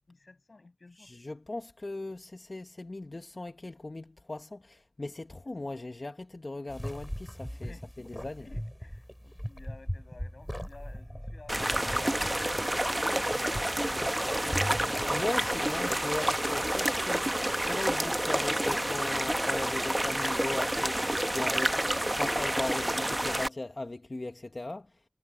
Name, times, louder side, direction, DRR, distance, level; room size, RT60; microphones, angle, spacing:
voice 1, 0.1-1.1 5.2-5.3 7.5-13.4, left 3 dB, 85° left, 6.0 m, -54 dB
voice 2, 0.9-7.7 8.0-8.5 15.1-21.8 22.1-25.0, left 2 dB, 60° left, 0.9 m, -38 dB
sound 1, 6.7-17.3, equal, 5° left, 6.2 m, -41 dB
sound 2, 11.5-23.5, right 1 dB, 20° right, 0.8 m, -29 dB
wide cardioid pair, 45°, 0 cm